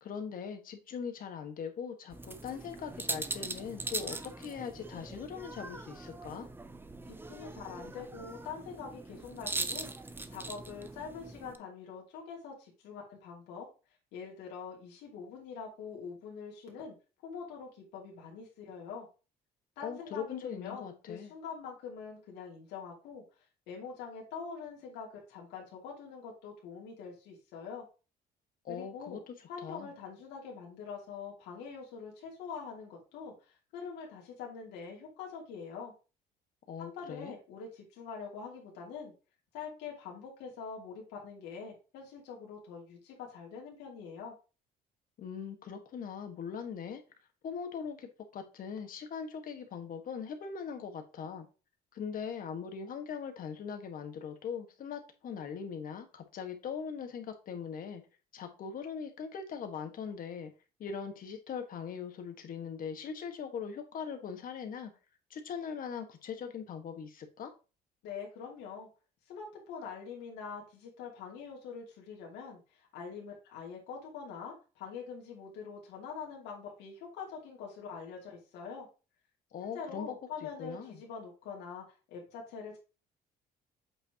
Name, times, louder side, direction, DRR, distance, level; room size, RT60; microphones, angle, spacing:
voice 1, 0.0-6.5 19.8-21.3 28.6-29.9 36.7-37.4 45.2-47.0 47.4-51.5 51.9-58.0 58.3-60.5 60.8-64.9 65.3-67.5 79.5-80.2 80.6-81.0, left 7 dB, 55° left, 6 dB, 1.7 m, -41 dB
sound 1, 2.1-11.6, right 2 dB, 15° right, 0.7 m, -41 dB
voice 2, 7.1-9.9 10.3-13.7 14.1-16.9 17.2-19.1 19.8-23.2 23.7-27.8 28.7-29.2 29.5-35.9 36.8-39.1 39.5-44.3 68.0-68.9 69.3-78.9 79.7-82.8, left 6 dB, 90° left, -2 dB, 2.7 m, -44 dB
8.1 x 5.7 x 3.0 m, 0.32 s
cardioid pair, 110°, 17 cm